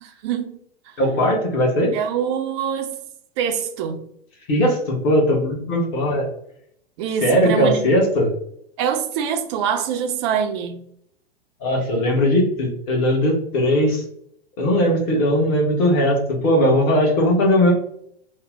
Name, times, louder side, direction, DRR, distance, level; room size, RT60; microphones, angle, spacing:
voice 1, 0.0-0.6 0.9-1.0 1.9-3.0 3.4-4.0 7.0-7.9 8.8-10.8, right 8 dB, 30° right, 0.4 m, -24 dB
voice 2, 1.0-1.9 4.5-6.3 7.2-8.3 11.6-14.0 14.6-17.7, equal, 30° left, 1.0 m, -19 dB
2.9 x 2.0 x 3.5 m
figure-of-eight pair, 100°, 31 cm